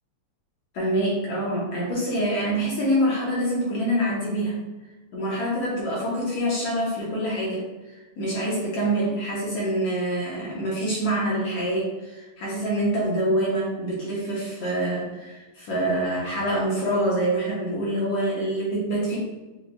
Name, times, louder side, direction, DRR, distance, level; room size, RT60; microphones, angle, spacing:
voice 1, 0.7-4.6 5.1-7.7 7.9-19.2, right 1 dB, 65° left, -5 dB, 1.6 m, -26 dB
6.7 x 2.3 x 2.3 m, 1.2 s
omnidirectional pair, 3.5 m